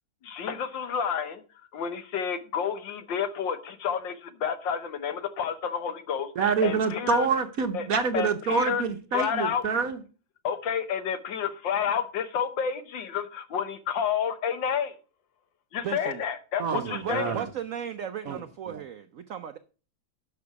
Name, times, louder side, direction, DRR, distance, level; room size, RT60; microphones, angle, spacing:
voice 1, 0.2-1.4 1.7-7.3 7.7-7.9 8.1-8.8 9.1-9.6 10.4-14.9 15.7-17.3, left 7 dB, 70° left, 1.7 m, -30 dB
voice 2, 6.4-10.0 16.6-17.5 18.3-18.4 18.7-18.8, right 5 dB, 55° right, 1.1 m, -27 dB
voice 3, 15.8-16.2 16.7-19.6, right 9 dB, 85° right, 0.7 m, -35 dB
11.5 x 6.1 x 4.7 m
omnidirectional pair, 2.2 m